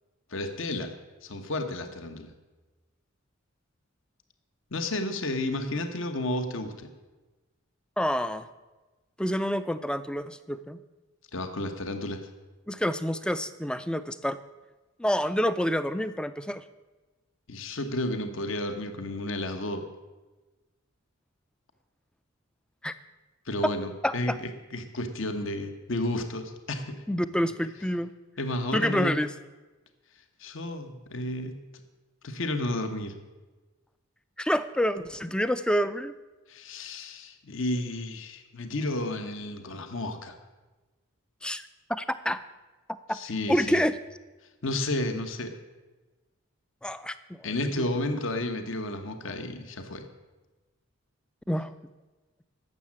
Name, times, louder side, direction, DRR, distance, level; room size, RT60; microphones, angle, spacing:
voice 1, 0.3-0.9 1.2-2.3 4.7-6.9 11.3-12.3 17.5-19.8 23.4-27.0 28.4-29.2 30.4-31.5 32.2-33.1 36.5-40.3 43.1-43.8 44.6-45.5 47.4-50.1, left 1 dB, 65° left, 7 dB, 1.1 m, -32 dB
voice 2, 8.0-8.5 9.2-10.8 12.7-14.4 15.0-16.6 22.8-22.9 24.0-24.4 27.1-28.1 28.7-29.3 34.4-36.1 41.4-41.6 41.9-42.4 43.1-43.2 43.5-43.9 46.8-47.1 47.8-47.9 51.5-51.7, equal, 5° left, 13 dB, 0.4 m, -27 dB
12.0 x 7.4 x 8.6 m, 1.2 s
head